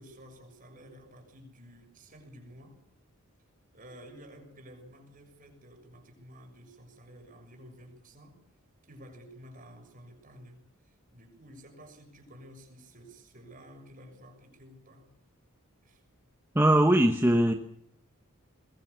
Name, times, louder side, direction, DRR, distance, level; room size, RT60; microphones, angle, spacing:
voice 1, 0.0-2.8 3.7-8.4 8.8-15.1 15.8-16.0, equal, 40° right, 3 dB, 6.8 m, -52 dB
voice 2, 16.5-17.5, right 1 dB, 10° right, 3 dB, 1.2 m, -21 dB
22.0 x 21.5 x 7.0 m, 0.68 s
head